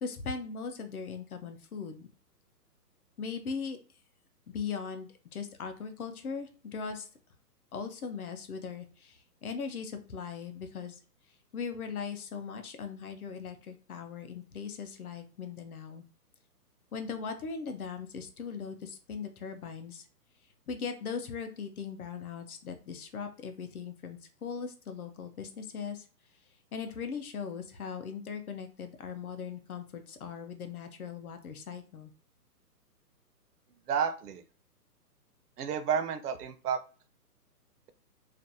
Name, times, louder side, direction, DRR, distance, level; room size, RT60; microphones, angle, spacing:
voice 1, 0.0-2.1 3.2-3.8 4.5-7.1 7.7-11.0 11.5-16.0 16.9-20.0 20.7-26.0 26.7-32.1, left 6 dB, 65° left, 7 dB, 0.6 m, -39 dB
voice 2, 33.9-34.4 35.6-36.8, right 7 dB, 70° right, 11 dB, 0.5 m, -31 dB
2.5 x 2.0 x 2.7 m, 0.37 s
hypercardioid pair, 180°, 48 cm